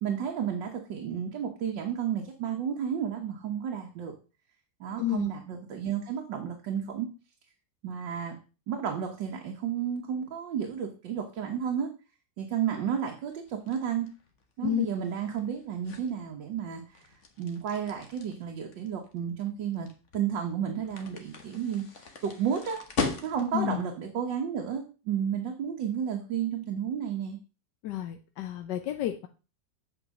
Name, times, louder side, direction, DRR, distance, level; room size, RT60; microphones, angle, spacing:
voice 1, 0.0-4.1 4.8-7.1 7.8-8.4 8.7-11.9 12.4-14.1 14.6-16.8 17.4-19.9 20.1-21.8 22.2-22.8 23.2-27.4, right 8 dB, 85° right, 2 dB, 1.9 m, -32 dB
sound 1, 13.3-23.7, left 4 dB, 45° left, 1.6 m, -40 dB
voice 2, 27.8-29.3, left 13 dB, 75° left, 5 dB, 1.3 m, -30 dB
8.5 x 5.0 x 6.3 m, 0.34 s
omnidirectional pair, 1.9 m